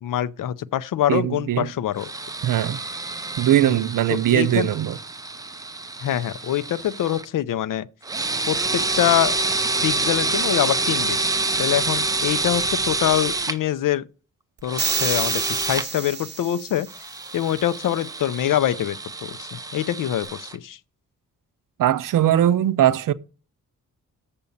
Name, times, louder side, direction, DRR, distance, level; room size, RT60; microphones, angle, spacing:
voice 1, 0.0-2.1 3.6-3.8 4.1-4.7 6.0-7.9 8.5-9.4 9.8-11.2 11.6-14.0 14.6-16.9 17.3-20.8, left 11 dB, 75° left, 0.5 m, -24 dB
voice 2, 1.1-1.7 2.4-2.8 3.4-5.0 21.8-23.1, right 12 dB, 80° right, 0.6 m, -20 dB
sound 1, 2.0-7.2 8.0-13.6 14.6-15.9 16.9-20.6, right 3 dB, 10° right, 0.3 m, -27 dB
sound 2, 14.8-17.1, right 6 dB, 35° right, 0.7 m, -29 dB
6.9 x 5.2 x 7.1 m
wide cardioid pair, 180°, 32 cm